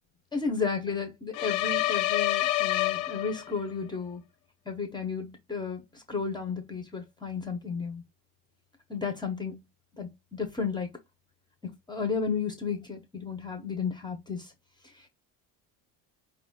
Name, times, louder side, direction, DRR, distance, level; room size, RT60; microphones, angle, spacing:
voice 1, 0.3-4.2 4.7-8.0 8.9-9.6 10.0-10.9 11.9-14.5 14.8-15.1, left 5 dB, 10° left, 0.7 m, -33 dB
sound 1, 1.3-3.7, left 16 dB, 60° left, 0.6 m, -27 dB
4.7 x 2.4 x 3.5 m
cardioid pair, 165°, 37 cm